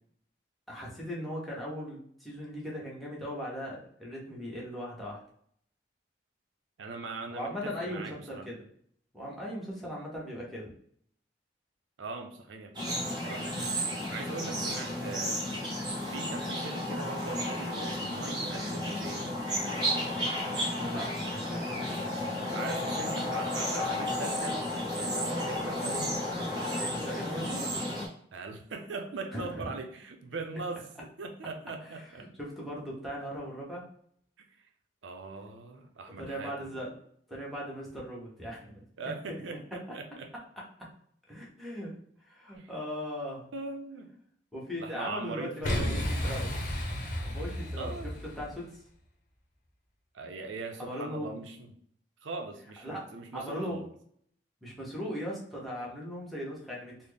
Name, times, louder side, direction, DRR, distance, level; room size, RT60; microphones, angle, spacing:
voice 1, 0.7-5.2 7.3-8.6 9.1-10.7 20.6-21.8 26.8-27.6 29.3-29.8 31.8-33.8 36.2-37.0 37.3-38.8 39.5-39.6 41.3-43.5 44.5-46.5 47.2-48.7 50.8-51.4 52.8-53.8 54.6-57.1, equal, ahead, -5 dB, 1.0 m, -39 dB
voice 2, 6.8-8.5 12.0-13.7 14.1-15.6 16.1-19.3 22.5-26.2 28.3-30.8 31.2-32.3 34.4-34.5 35.0-36.7 39.0-40.3 42.5-42.7 43.5-44.1 44.8-45.5 45.8-46.0 47.8-48.1 50.1-51.7 52.2-53.8, right 3 dB, 90° right, 4 dB, 0.5 m, -41 dB
sound 1, 12.7-28.1, equal, 25° right, 1.1 m, -32 dB
Boom, 45.6-48.6, equal, 45° left, 0.8 m, -32 dB
4.0 x 2.0 x 3.3 m, 0.64 s
head